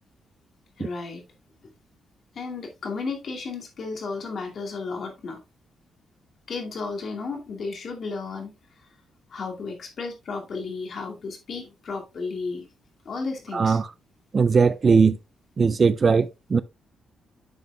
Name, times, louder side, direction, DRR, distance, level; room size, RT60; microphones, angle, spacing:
voice 1, 0.8-1.2 2.3-5.4 6.5-8.5 9.3-12.7 13.0-13.8, left 4 dB, 45° left, 2.4 m, -33 dB
voice 2, 13.5-13.9 14.3-15.2 15.6-16.6, right 5 dB, 30° right, 0.4 m, -19 dB
10.5 x 7.1 x 2.3 m
cardioid pair, 160°, 0 cm